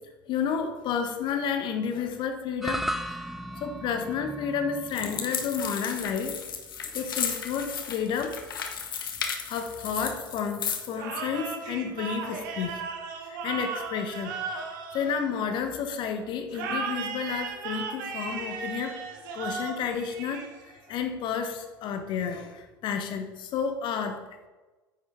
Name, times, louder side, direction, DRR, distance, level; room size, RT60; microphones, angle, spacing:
voice 1, 0.3-2.8 3.5-6.4 6.8-8.4 9.5-12.8 13.2-14.4 14.9-19.0 19.3-24.2, left 6 dB, 40° left, 6 dB, 1.2 m, -31 dB
sound 1, 2.6-11.0, right 1 dB, 5° right, 0.5 m, -39 dB
sound 2, 4.9-10.9, left 7 dB, 70° left, 1.0 m, -34 dB
sound 3, 10.9-15.8 16.5-20.9, right 5 dB, 60° right, 1.4 m, -36 dB
9.6 x 8.2 x 3.4 m, 1.2 s
figure-of-eight pair, 70°, 12 cm